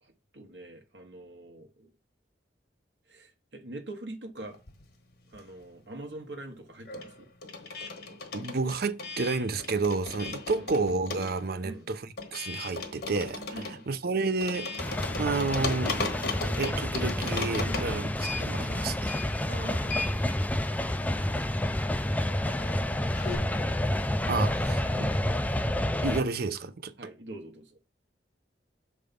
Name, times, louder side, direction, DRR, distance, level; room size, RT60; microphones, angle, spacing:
voice 1, 0.0-1.9 3.1-4.6 5.3-7.3 10.5-10.7 11.6-11.9 13.5-13.9 17.6-17.9 19.5-20.4 22.7-23.7 27.0-27.8, right 1 dB, 75° right, 1.2 m, -44 dB
sound 1, 4.5-5.8 6.0-23.4, left 3 dB, 60° left, 1.2 m, -38 dB
voice 2, 8.3-16.0 16.6-19.1 24.3-25.1 26.0-26.9, right 3 dB, 60° right, 0.6 m, -31 dB
sound 2, 14.8-26.2, left 1 dB, 10° left, 0.4 m, -29 dB
6.8 x 3.4 x 5.2 m
head